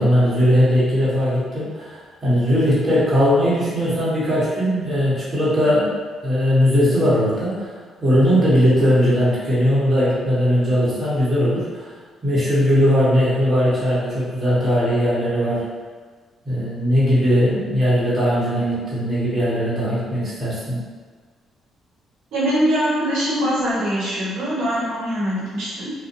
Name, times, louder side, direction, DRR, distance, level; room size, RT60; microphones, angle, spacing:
voice 1, 0.0-5.9 6.2-7.7 8.0-11.9 12.2-15.6 16.4-20.8, equal, 30° right, -10 dB, 1.0 m, -19 dB
voice 2, 22.3-25.9, equal, 80° right, -8 dB, 1.0 m, -22 dB
2.7 x 2.0 x 2.5 m, 1.5 s
cardioid pair, 90°, 0 cm